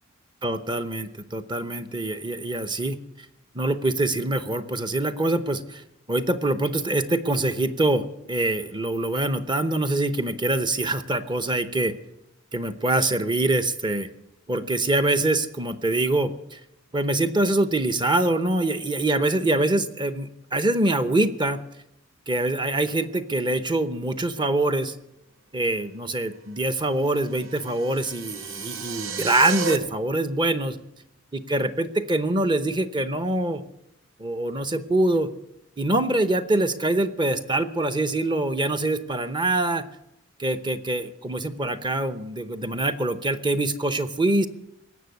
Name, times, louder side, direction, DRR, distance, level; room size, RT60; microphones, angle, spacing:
voice 1, 0.4-3.0 3.5-5.8 6.1-12.0 12.5-14.1 14.5-16.6 16.9-21.6 22.3-25.0 25.5-30.8 31.3-33.6 34.2-35.3 35.8-39.8 40.4-44.5, right 2 dB, 20° right, 10 dB, 0.8 m, -24 dB
sound 1, 27.2-29.8, right 5 dB, 65° right, 0.9 m, -32 dB
18.5 x 7.2 x 9.4 m, 0.85 s
head